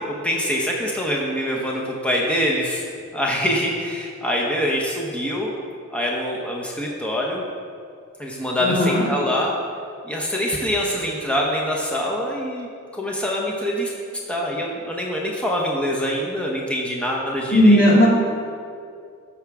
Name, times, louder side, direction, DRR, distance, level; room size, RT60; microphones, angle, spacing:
voice 1, 0.1-2.8 3.1-5.5 5.9-7.4 8.2-9.5 10.0-12.7 12.9-13.9 14.3-17.9, equal, 5° left, -2 dB, 0.9 m, -24 dB
voice 2, 8.6-9.0 17.5-18.1, equal, 45° left, -5 dB, 2.2 m, -15 dB
12.0 x 7.0 x 3.5 m, 2.3 s
head